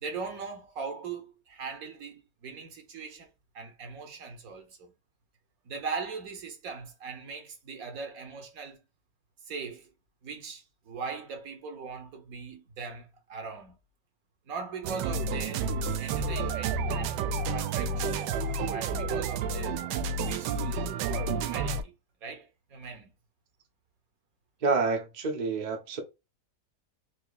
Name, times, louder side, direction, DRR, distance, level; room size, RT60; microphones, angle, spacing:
voice 1, 0.0-3.3 3.5-5.0 5.6-8.8 9.5-9.9 10.2-13.8 14.5-15.7 16.0-18.3 18.7-19.8 20.3-21.9 22.2-23.1, right 5 dB, 60° right, 1.2 m, -40 dB
sound 1, 14.8-21.8, right 4 dB, 85° right, 1.2 m, -30 dB
voice 2, 24.6-26.0, right 4 dB, 40° right, 0.7 m, -28 dB
4.6 x 2.8 x 2.3 m
omnidirectional pair, 1.8 m